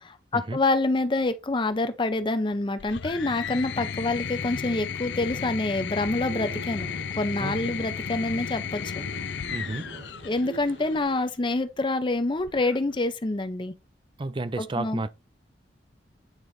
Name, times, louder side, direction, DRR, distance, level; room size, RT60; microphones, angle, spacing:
voice 1, 0.0-6.9 7.2-9.0 10.2-13.7 14.6-15.0, left 2 dB, 25° left, 0.6 m, -27 dB
sound 1, 2.8-11.2 12.4-13.0, left 7 dB, 70° left, 0.5 m, -34 dB
sound 2, 6.1-11.1, right 3 dB, 55° right, 1.7 m, -45 dB
voice 2, 7.4-7.9 9.5-9.9 14.2-15.1, right 2 dB, 30° right, 0.4 m, -32 dB
8.9 x 3.9 x 3.2 m
head